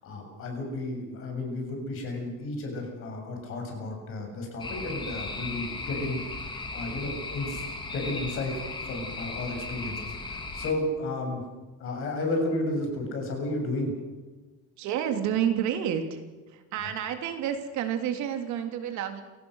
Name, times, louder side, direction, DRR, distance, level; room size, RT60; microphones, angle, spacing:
voice 1, 0.0-11.4 11.8-13.9 16.8-16.9, left 2 dB, 45° left, 3 dB, 7.2 m, -33 dB
sound 1, 4.6-10.7, left 3 dB, 15° left, 2.4 m, -36 dB
voice 2, 14.8-16.2 16.5-19.2, right 9 dB, 65° right, 6 dB, 3.3 m, -29 dB
28.5 x 18.0 x 6.5 m, 1.3 s
cardioid pair, 180°, 31 cm